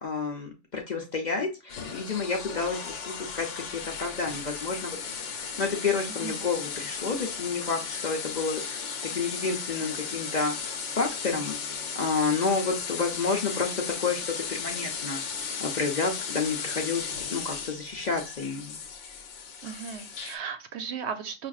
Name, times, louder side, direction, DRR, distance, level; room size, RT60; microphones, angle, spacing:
voice 1, 0.0-5.0 5.3-11.6 11.9-18.8, left 4 dB, 45° left, 2 dB, 0.6 m, -30 dB
sound 1, 1.7-20.4, left 6 dB, 80° left, 1.1 m, -36 dB
voice 2, 19.6-21.5, right 7 dB, 65° right, 8 dB, 0.9 m, -36 dB
5.5 x 2.5 x 2.3 m, 0.30 s
omnidirectional pair, 1.2 m